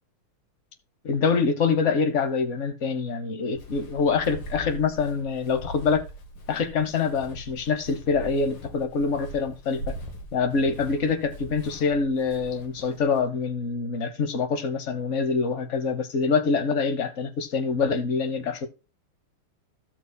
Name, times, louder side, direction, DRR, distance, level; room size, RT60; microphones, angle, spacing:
voice 1, 1.0-6.0 6.5-9.9 10.3-18.7, left 5 dB, 45° left, 1.1 m, -25 dB
Walk footsteps, 3.5-13.2, equal, 90° left, 2.5 m, -41 dB
15.5 x 6.2 x 2.2 m
omnidirectional pair, 2.3 m